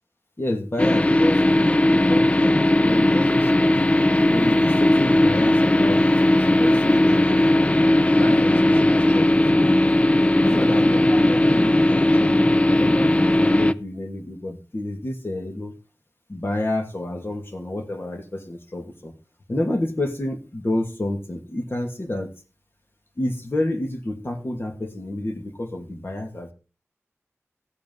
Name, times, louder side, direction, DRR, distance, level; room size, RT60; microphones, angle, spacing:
voice 1, 0.4-3.8 4.3-6.0 6.3-7.7 8.1-9.6 10.3-15.7 16.3-19.1 19.5-22.3 23.2-26.5, left 1 dB, 50° left, 4 dB, 2.5 m, -29 dB
sound 1, 0.8-13.7, left 1 dB, 25° left, 0.5 m, -18 dB
14.5 x 8.6 x 4.0 m, 0.32 s
wide cardioid pair, 65°, 5 cm